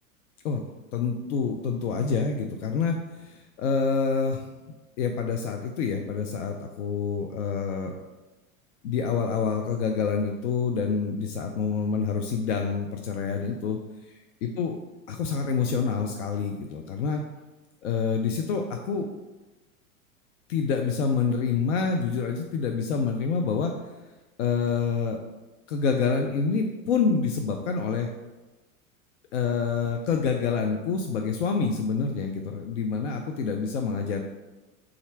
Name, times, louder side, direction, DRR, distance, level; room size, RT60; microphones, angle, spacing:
voice 1, 0.9-4.5 5.0-7.9 8.8-13.8 14.4-14.7 15.1-17.2 17.8-19.1 20.5-23.7 24.4-25.2 25.7-28.1 29.3-34.2, left 5 dB, 55° left, 4 dB, 0.5 m, -27 dB
4.0 x 2.5 x 4.5 m, 1.1 s
figure-of-eight pair, 90°, 43 cm